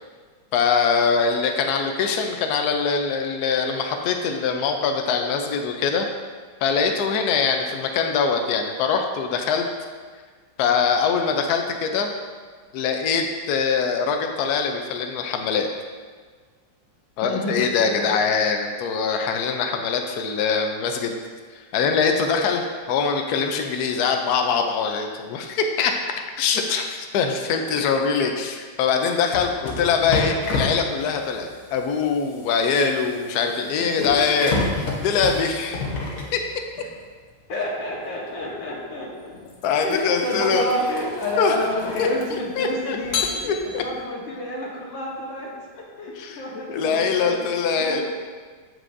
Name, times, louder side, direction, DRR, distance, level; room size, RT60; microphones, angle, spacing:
voice 1, 0.5-6.1 6.6-9.7 10.6-12.1 12.7-15.7 17.2-21.1 21.6-22.6 22.9-25.9 26.4-35.8 36.3-36.4 39.6-40.7 41.4-41.5 42.6-43.8 46.2-46.4 46.7-48.0, left 5 dB, 70° left, 4 dB, 1.0 m, -23 dB
voice 2, 17.2-18.1 22.2-22.6 27.5-27.8 33.8-34.2 37.5-39.3 39.8-48.0, left 1 dB, 90° left, -3 dB, 2.1 m, -29 dB
sound 1, 29.3-36.9 38.3-38.5 39.2-42.5 43.0-43.9, left 3 dB, 50° left, 1.3 m, -30 dB
7.9 x 7.4 x 2.6 m, 1.5 s
omnidirectional pair, 2.0 m